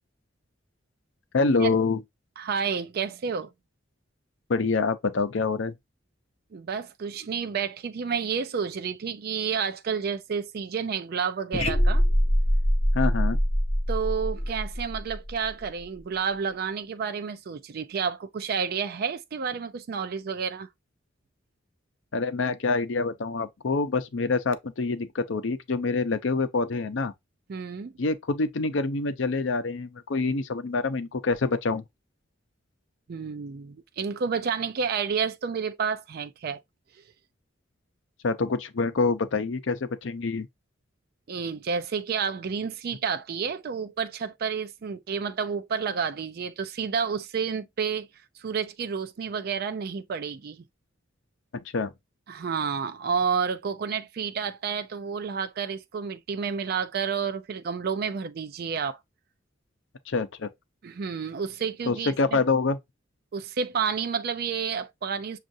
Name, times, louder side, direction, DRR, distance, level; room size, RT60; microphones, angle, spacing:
voice 1, 1.3-2.0 4.5-5.8 12.9-13.4 22.1-27.1 28.0-31.8 38.2-40.5 51.5-51.9 60.1-60.5 61.9-62.8, left 3 dB, 75° left, 0.6 m, -26 dB
voice 2, 2.4-3.5 6.5-12.0 13.9-20.7 27.5-27.9 33.1-36.6 41.3-48.1 48.4-50.6 52.3-59.0 60.8-62.1 63.3-65.4, right 6 dB, 50° right, 0.4 m, -30 dB
sound 1, 11.5-15.6, equal, 35° left, 0.7 m, -24 dB
6.2 x 2.4 x 2.6 m
head